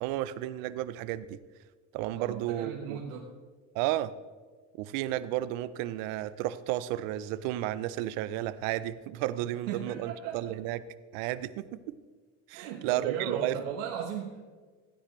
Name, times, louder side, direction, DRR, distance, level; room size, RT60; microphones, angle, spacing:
voice 1, 0.0-1.4 1.9-3.0 3.7-4.1 4.8-10.8 11.1-12.0 12.5-13.6, right 14 dB, 60° right, 15 dB, 0.7 m, -32 dB
voice 2, 2.2-3.3 9.7-10.6 12.5-14.4, right 8 dB, 80° right, 0 dB, 1.3 m, -37 dB
15.5 x 9.8 x 3.2 m, 1.4 s
supercardioid pair, 125°, 39 cm